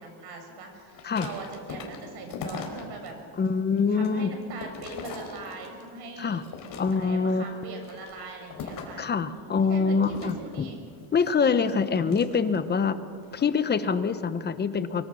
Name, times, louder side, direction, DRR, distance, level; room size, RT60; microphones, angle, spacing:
voice 1, 0.0-3.2 3.9-6.4 6.9-10.8, right 3 dB, 60° right, 4 dB, 6.1 m, -41 dB
sound 1, 0.9-3.1 3.5-5.9 6.3-7.2 7.7-9.1 10.1-12.7 13.2-13.5, left 5 dB, 50° left, 4.3 m, -41 dB
voice 2, 3.4-4.3 6.2-6.4 6.8-7.5 9.0-10.7 11.1-13.0 13.3-15.0, left 5 dB, 25° left, 11 dB, 1.0 m, -25 dB
24.0 x 24.0 x 6.4 m, 2.3 s
cardioid pair, 155°, 44 cm